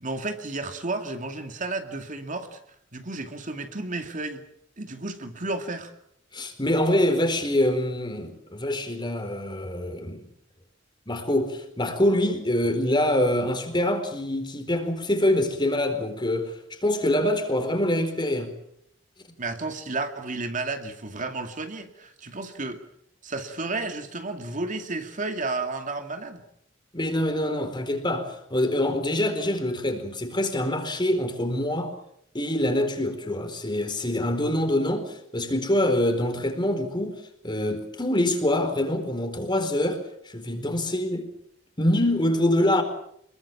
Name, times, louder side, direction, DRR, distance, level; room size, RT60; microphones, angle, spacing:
voice 1, 0.0-2.6 2.9-4.4 4.8-5.9 19.4-22.8 23.2-26.4, right 3 dB, 45° right, 2.5 m, -32 dB
voice 2, 6.3-10.2 11.1-18.6 26.9-31.9 32.3-41.3 41.8-42.8, left 1 dB, 25° left, 4.3 m, -25 dB
26.0 x 22.5 x 7.2 m
head